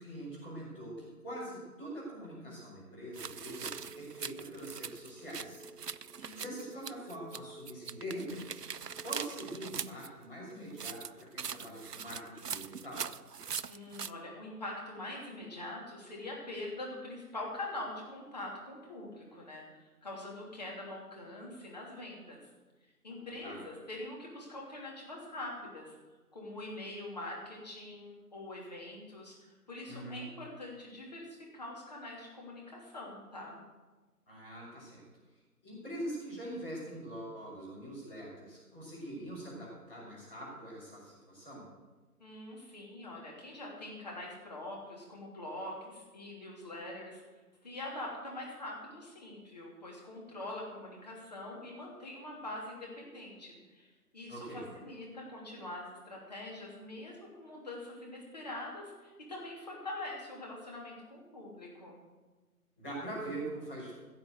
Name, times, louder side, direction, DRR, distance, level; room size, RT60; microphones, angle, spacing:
voice 1, 0.0-5.6 6.3-8.6 9.0-13.0 23.4-23.6 29.9-30.2 34.3-35.0 35.6-41.6 54.3-54.6 62.8-63.9, right 1 dB, 5° left, -12 dB, 3.8 m, -43 dB
sound 1, 3.1-7.4 7.7-10.1 10.7-14.1, right 7 dB, 85° right, 0.7 m, -42 dB
sound 2, 3.7-9.4, right 2 dB, 80° left, 3.5 m, -54 dB
voice 2, 6.2-6.5 13.7-22.4 23.0-25.9 26.3-33.6 42.2-47.2 47.6-62.0, left 2 dB, 25° left, -3 dB, 3.0 m, -44 dB
16.0 x 6.9 x 8.0 m, 1.2 s
figure-of-eight pair, 170°, 46 cm